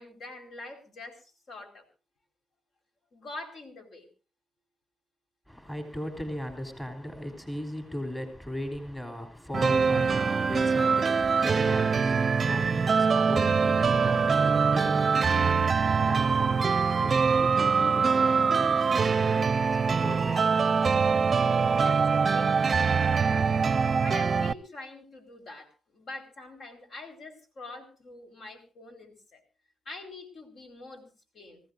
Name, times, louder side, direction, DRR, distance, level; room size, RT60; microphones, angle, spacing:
voice 1, 0.0-1.8 3.1-4.1 21.7-23.5 24.0-29.4 29.8-31.6, left 2 dB, 55° left, 4.7 m, -44 dB
voice 2, 5.5-20.6, left 1 dB, 15° left, 3.6 m, -38 dB
sound 1, 9.5-24.5, right 5 dB, 35° right, 0.7 m, -24 dB
26.5 x 15.0 x 2.6 m
cardioid pair, 90°, 0 cm